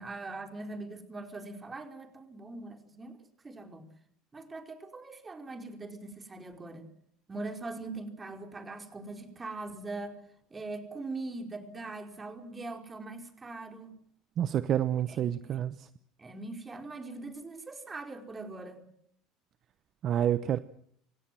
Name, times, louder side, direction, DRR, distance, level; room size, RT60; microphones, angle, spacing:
voice 1, 0.0-3.2 3.4-3.8 4.3-6.9 7.3-10.2 10.5-13.9 15.1-15.4 16.2-18.9, right 3 dB, 20° right, 6 dB, 4.9 m, -41 dB
voice 2, 14.4-15.9 20.0-20.6, right 10 dB, 45° right, 14 dB, 1.0 m, -28 dB
28.5 x 16.5 x 7.7 m, 0.67 s
supercardioid pair, 100°, 0 cm